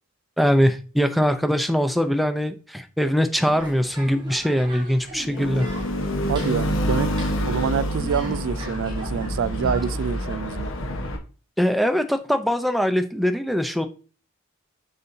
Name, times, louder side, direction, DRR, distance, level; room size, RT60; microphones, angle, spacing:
voice 1, 0.4-5.7 11.6-13.9, equal, ahead, 0.5 m, -22 dB
sound 1, 3.4-10.3, right 1 dB, 20° right, 1.3 m, -39 dB
sound 2, 5.4-11.2, equal, 65° left, 1.2 m, -27 dB
voice 2, 6.3-10.7, right 7 dB, 70° right, 0.3 m, -27 dB
6.7 x 5.7 x 2.7 m
head